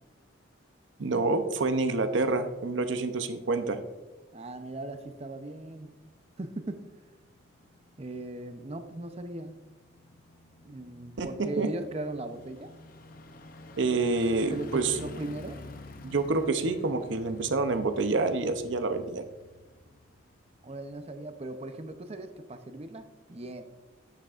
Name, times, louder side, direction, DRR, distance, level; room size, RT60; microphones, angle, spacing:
voice 1, 1.0-3.8 11.2-11.3 11.6-11.7 13.8-15.0 16.0-19.2, right 3 dB, 70° right, 9 dB, 0.6 m, -27 dB
voice 2, 4.3-5.9 6.4-6.9 8.0-9.6 10.6-12.7 14.5-15.6 20.6-23.6, right 2 dB, 30° right, 8 dB, 0.6 m, -38 dB
sound 1, 4.4-20.9 21.3-21.4, left 2 dB, 45° left, 0.6 m, -50 dB
9.3 x 9.2 x 2.5 m, 1.2 s
head